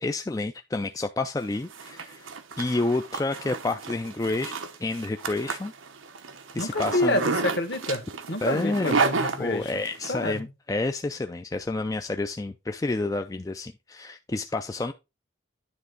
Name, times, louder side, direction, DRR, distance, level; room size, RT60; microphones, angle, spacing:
voice 1, 0.0-2.3 2.6-4.5 4.8-5.7 6.5-7.2 8.4-9.0 9.4-14.9, left 2 dB, 15° left, 0.3 m, -29 dB
Zipper (clothing), 1.4-10.1, right 4 dB, 90° right, 0.9 m, -31 dB
voice 2, 6.6-9.7 10.1-10.4, left 1 dB, 55° left, 1.4 m, -28 dB
9.8 x 3.4 x 5.2 m
head